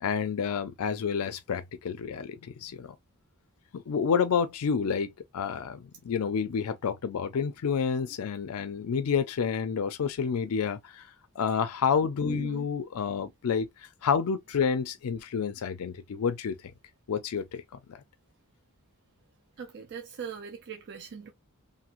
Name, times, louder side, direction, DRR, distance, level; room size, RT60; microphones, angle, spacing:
voice 1, 0.0-2.9 3.7-11.0 11.4-13.7 14.0-16.5 17.1-17.6, left 6 dB, 75° left, 0.4 m, -29 dB
voice 2, 12.3-12.7 19.6-21.3, right 6 dB, 50° right, 0.4 m, -40 dB
3.0 x 2.6 x 2.4 m
head